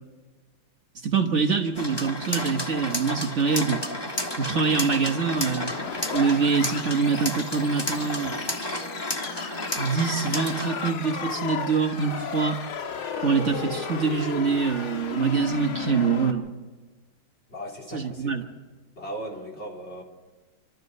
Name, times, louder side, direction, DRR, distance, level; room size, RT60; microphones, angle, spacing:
voice 1, 1.0-4.1 4.4-5.7 6.1-8.5 9.8-12.6 13.2-16.5 17.9-18.4, right 5 dB, 40° right, 2 dB, 1.4 m, -25 dB
sound 1, 1.8-10.9, left 1 dB, 15° left, 1.1 m, -32 dB
sound 2, 5.7-16.3, left 6 dB, 85° left, 2.2 m, -34 dB
voice 2, 17.5-18.4 18.9-20.0, equal, 30° left, -1 dB, 3.4 m, -37 dB
30.0 x 13.0 x 6.7 m, 1.3 s
omnidirectional pair, 2.2 m